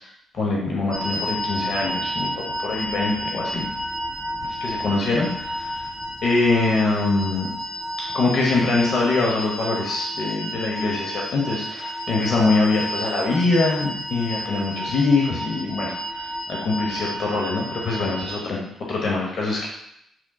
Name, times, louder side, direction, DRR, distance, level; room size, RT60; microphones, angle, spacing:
voice 1, 0.3-2.3 2.6-3.6 4.6-5.8 6.2-7.5 8.1-18.6 18.9-19.7, left 3 dB, 55° left, -2 dB, 0.9 m, -23 dB
sound 1, 0.9-18.4, equal, 20° right, 1.6 m, -31 dB
6.1 x 3.7 x 2.3 m, 0.75 s
cardioid pair, 90°, 0 cm